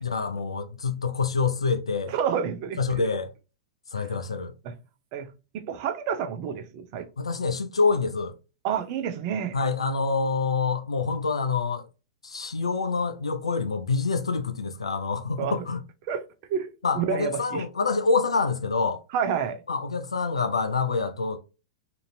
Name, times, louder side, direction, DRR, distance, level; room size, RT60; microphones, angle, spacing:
voice 1, 0.0-2.1 2.8-3.3 3.9-4.5 7.2-8.3 9.5-11.8 12.2-15.8 16.8-19.0 19.7-21.4, left 4 dB, 90° left, 0.4 m, -26 dB
voice 2, 2.0-3.1 4.6-4.7 5.1-7.1 8.6-9.6 15.4-15.6 16.1-16.2 16.5-17.6 19.1-19.6, right 7 dB, 50° right, 0.6 m, -29 dB
2.9 x 2.6 x 2.5 m
hypercardioid pair, 100°, 3 cm